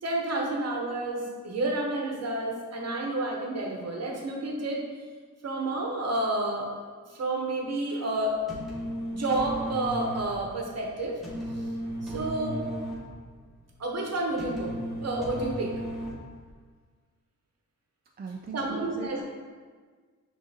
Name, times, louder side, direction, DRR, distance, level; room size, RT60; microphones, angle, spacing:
voice 1, 0.0-4.8 5.4-6.8 7.1-8.4 9.1-11.2 11.5-11.7 12.0-12.6 13.8-14.8 15.0-15.8 18.5-19.2, right 2 dB, 50° right, -1 dB, 0.9 m, -30 dB
sound 1, 8.3-16.5, equal, ahead, 1.2 m, -36 dB
voice 2, 18.2-19.2, right 5 dB, 30° right, 0 dB, 0.4 m, -38 dB
5.5 x 2.7 x 2.7 m, 1.5 s
cardioid pair, 75°, 32 cm